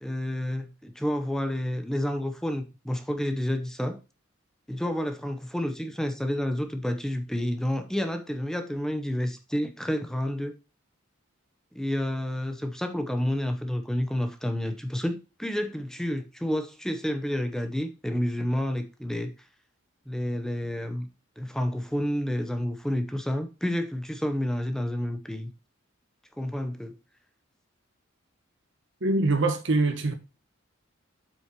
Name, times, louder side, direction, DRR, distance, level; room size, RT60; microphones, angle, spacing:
voice 1, 0.0-4.0 4.7-10.5 11.7-19.3 20.1-21.1 21.4-25.5 26.4-27.0, equal, 5° left, 0.8 m, -30 dB
voice 2, 29.0-30.1, right 2 dB, 65° right, 1.3 m, -24 dB
7.7 x 6.2 x 2.9 m
head